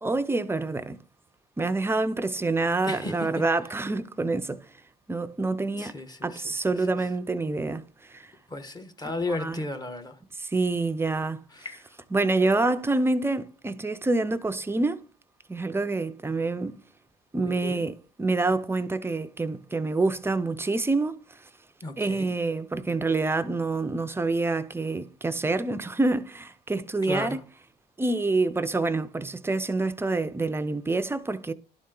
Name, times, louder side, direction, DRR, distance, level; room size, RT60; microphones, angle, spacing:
voice 1, 0.0-1.0 1.6-4.6 5.1-5.9 6.2-7.8 8.1-8.3 9.3-9.6 10.4-11.4 12.1-15.0 15.5-16.8 17.3-21.2 22.0-27.4 28.0-31.5, right 3 dB, 15° right, 0.6 m, -27 dB
voice 2, 2.8-3.4 5.8-6.5 8.5-10.2 11.5-11.8 17.3-17.8 21.8-22.3 27.0-27.4, left 2 dB, 25° left, 1.1 m, -34 dB
11.5 x 4.2 x 3.8 m
cardioid pair, 110°, 17 cm